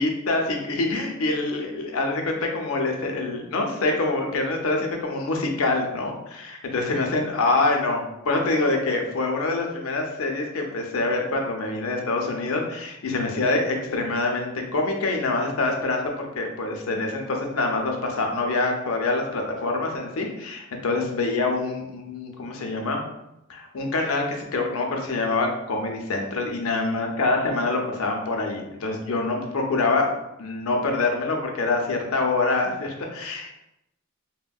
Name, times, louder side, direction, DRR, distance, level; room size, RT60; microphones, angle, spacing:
voice 1, 0.0-23.0 23.5-30.1 30.4-33.5, left 3 dB, 85° left, 2 dB, 0.5 m, -25 dB
3.4 x 2.1 x 2.3 m, 0.86 s
head